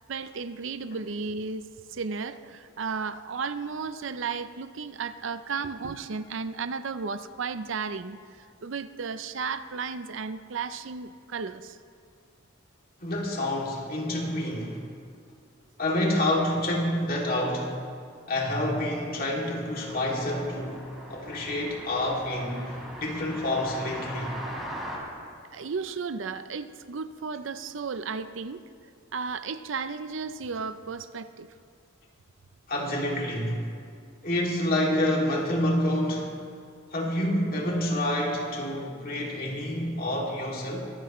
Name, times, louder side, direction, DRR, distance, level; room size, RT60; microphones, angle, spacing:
voice 1, 0.1-11.8 25.5-28.6 29.1-31.5, right 5 dB, 65° right, 12 dB, 0.5 m, -34 dB
voice 2, 13.0-14.8 15.8-17.8 18.3-20.8 21.1-24.3 32.7-33.6 34.2-36.3 36.9-40.8, left 1 dB, 45° left, -2 dB, 2.6 m, -28 dB
sound 1, 19.8-25.0, equal, ahead, 3.5 m, -40 dB
23.0 x 15.0 x 3.1 m, 2.3 s
head